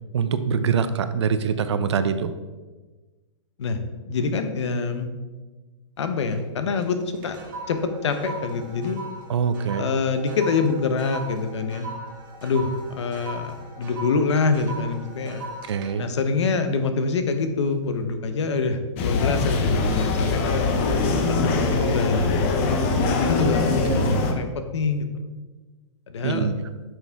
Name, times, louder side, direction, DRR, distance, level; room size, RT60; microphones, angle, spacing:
voice 1, 0.1-2.3 9.3-9.9 15.7-16.1 23.4-23.5 24.0-24.2 26.2-26.5, right 6 dB, 60° right, 11 dB, 0.7 m, -24 dB
voice 2, 3.6-5.1 6.0-7.4 7.7-9.0 9.8-11.9 12.4-15.4 16.0-20.7 21.2-22.8 23.1-25.1 26.1-26.5, left 4 dB, 60° left, 8 dB, 1.0 m, -26 dB
sound 1, 6.0-6.5 6.8-17.4 17.8-18.1, right 2 dB, 40° right, 1.5 m, -39 dB
sound 2, 19.0-24.3, left 3 dB, 25° left, 0.7 m, -22 dB
11.0 x 6.4 x 3.6 m, 1.3 s
hypercardioid pair, 175°, 16 cm